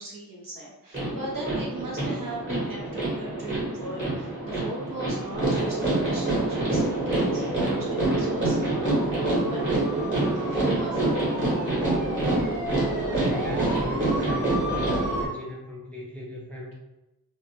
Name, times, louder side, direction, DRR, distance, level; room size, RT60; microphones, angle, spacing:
voice 1, 0.0-11.8, right 2 dB, 60° right, -4 dB, 0.9 m, -38 dB
sound 1, 0.9-15.3, right 2 dB, 30° right, 1.3 m, -26 dB
voice 2, 13.2-16.7, equal, 5° left, -4 dB, 0.5 m, -38 dB
2.4 x 2.1 x 2.8 m, 0.98 s
wide cardioid pair, 70°, 37 cm